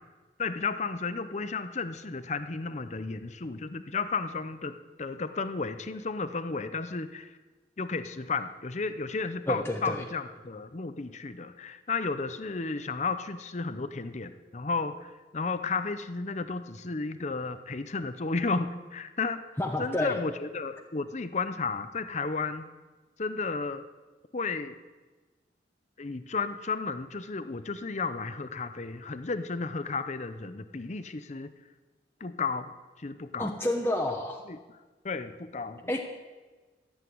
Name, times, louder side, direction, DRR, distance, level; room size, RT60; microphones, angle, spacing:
voice 1, 0.4-7.4 7.8-19.4 19.8-22.7 23.2-23.9 24.3-24.8 26.0-31.5 32.2-32.7 33.0-33.5 34.5-34.6 35.0-36.0, left 4 dB, 40° left, 11 dB, 0.7 m, -33 dB
voice 2, 9.5-10.0 19.6-20.2 33.4-34.4 35.9-36.0, left 1 dB, 15° left, 1 dB, 1.1 m, -29 dB
14.0 x 8.2 x 9.5 m, 1.3 s
head